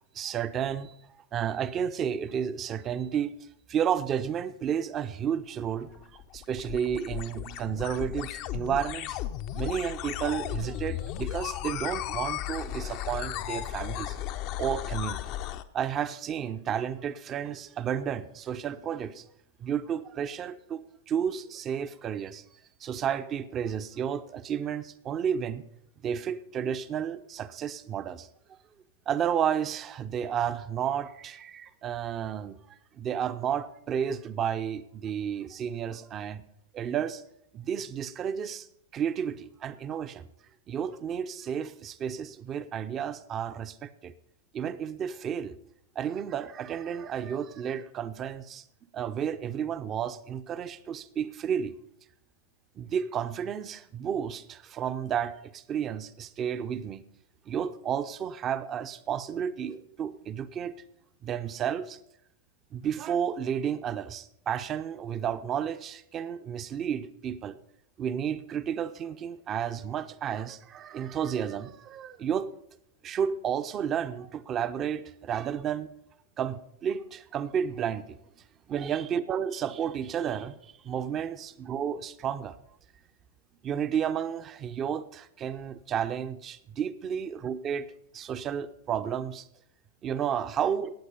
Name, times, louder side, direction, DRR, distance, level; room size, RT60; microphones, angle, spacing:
voice 1, 0.1-0.9 1.3-3.3 3.7-6.1 6.3-9.2 9.5-14.2 14.6-15.2 15.7-19.2 19.6-22.4 22.8-25.7 26.0-28.3 29.1-36.4 36.7-37.2 37.5-38.7 38.9-40.3 40.7-44.1 44.5-45.6 45.9-48.6 48.9-51.7 52.8-57.0 57.5-60.7 61.2-62.0 62.7-67.6 68.0-72.5 73.0-75.9 76.4-78.1 78.7-82.6 83.6-87.9 88.1-89.5 90.0-90.9, right 8 dB, 25° right, 13 dB, 0.8 m, -32 dB
sound 1, 5.8-15.6, left 13 dB, 40° left, 0.7 m, -35 dB
18.5 x 8.0 x 5.5 m, 0.76 s
figure-of-eight pair, 95°, 0 cm